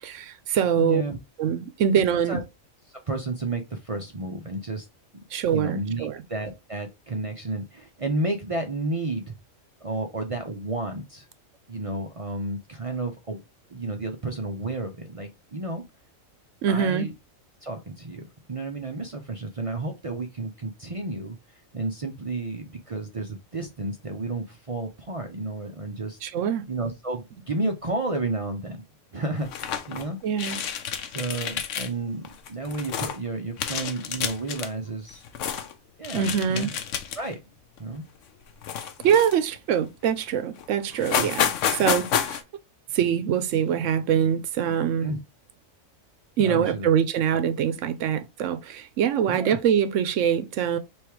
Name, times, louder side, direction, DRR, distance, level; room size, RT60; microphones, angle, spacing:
voice 1, 0.0-1.0 1.4-2.4 5.3-6.2 16.6-17.1 26.2-26.6 30.2-30.6 36.1-36.7 39.0-42.4 42.9-45.1 46.4-50.8, right 8 dB, 70° right, 0.9 m, -24 dB
voice 2, 0.8-1.2 1.9-2.0 2.3-2.4 2.9-4.8 5.5-9.3 9.8-11.2 11.7-13.4 13.7-15.8 16.7-17.1 17.6-21.4 21.7-26.2 26.7-28.8 29.1-30.2 31.1-35.3 36.0-36.7 37.2-37.4 37.8-38.1 41.2-41.3 45.0-45.2 46.4-46.9 49.3-49.6, right 2 dB, 45° right, 0.4 m, -31 dB
sound 1, 29.4-30.0 30.4-31.9 32.2-33.2 33.6-34.7 35.1-35.7 36.0-37.3 37.8-38.0 38.6-39.6 40.2-40.3 40.6-40.7 40.9-42.4, left 8 dB, 70° left, 1.0 m, -29 dB
3.4 x 3.1 x 4.5 m
omnidirectional pair, 1.4 m